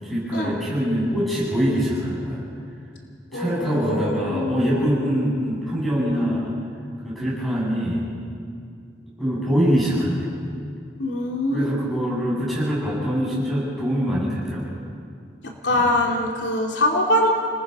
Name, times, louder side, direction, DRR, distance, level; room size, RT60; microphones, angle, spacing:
voice 1, 0.0-2.4 3.3-6.5 7.0-8.1 9.2-10.3 11.5-14.8 15.8-15.9, equal, ahead, -6 dB, 8.0 m, -24 dB
voice 2, 3.3-4.8 11.0-11.7 15.4-17.3, left 1 dB, 85° left, 0 dB, 2.8 m, -23 dB
28.0 x 20.0 x 5.5 m, 2.3 s
head